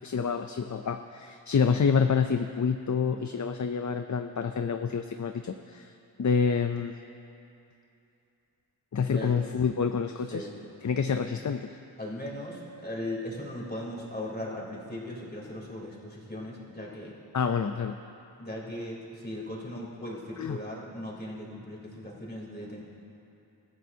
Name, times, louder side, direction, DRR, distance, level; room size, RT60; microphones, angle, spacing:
voice 1, 0.0-5.9 6.2-6.9 8.9-10.5 10.8-11.8 17.3-18.0 20.4-20.6, left 6 dB, 45° left, 7 dB, 0.5 m, -28 dB
voice 2, 12.0-17.1 18.4-22.8, left 1 dB, 25° left, -4 dB, 3.4 m, -38 dB
28.0 x 14.0 x 2.8 m, 2.8 s
wide cardioid pair, 85°, 42 cm